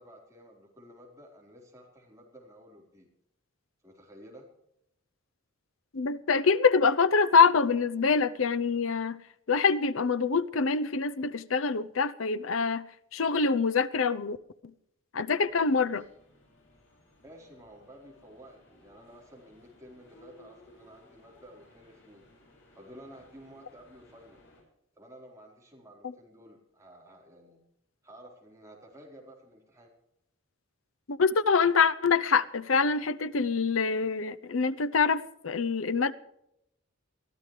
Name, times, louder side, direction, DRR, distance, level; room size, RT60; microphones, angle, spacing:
voice 1, 0.0-3.1 3.8-4.5 17.2-22.3 22.7-24.4 24.9-27.6 28.0-29.9, equal, 15° right, 4.3 m, -52 dB
voice 2, 5.9-9.2 9.5-12.9 13.1-14.4 15.1-16.0 31.1-36.1, left 5 dB, 80° left, 0.7 m, -25 dB
sound 1, 15.4-24.6, left 2 dB, 65° left, 6.4 m, -59 dB
22.0 x 14.0 x 3.3 m
head